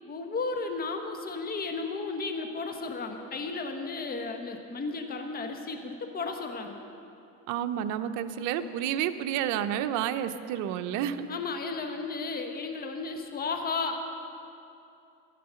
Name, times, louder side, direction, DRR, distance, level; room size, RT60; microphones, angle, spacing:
voice 1, 0.1-6.8 11.3-14.0, left 4 dB, 30° left, 4 dB, 1.2 m, -34 dB
voice 2, 7.5-11.3, right 10 dB, 70° right, 9 dB, 0.8 m, -30 dB
11.5 x 11.0 x 6.3 m, 2.7 s
supercardioid pair, 115°, 31 cm